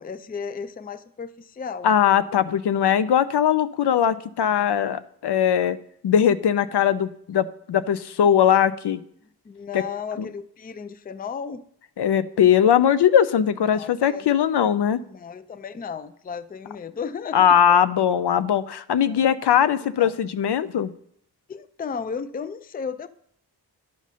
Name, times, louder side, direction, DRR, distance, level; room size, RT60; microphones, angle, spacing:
voice 1, 0.0-1.9 9.5-11.6 13.7-14.3 15.0-17.8 19.0-19.3 20.0-20.1 21.5-23.1, left 6 dB, 25° left, 13 dB, 0.4 m, -34 dB
voice 2, 1.8-5.8 6.0-9.0 9.7-9.8 12.0-15.0 17.3-20.9, left 9 dB, 70° left, 13 dB, 0.5 m, -20 dB
10.5 x 4.1 x 6.1 m, 0.69 s
wide cardioid pair, 75°, 42 cm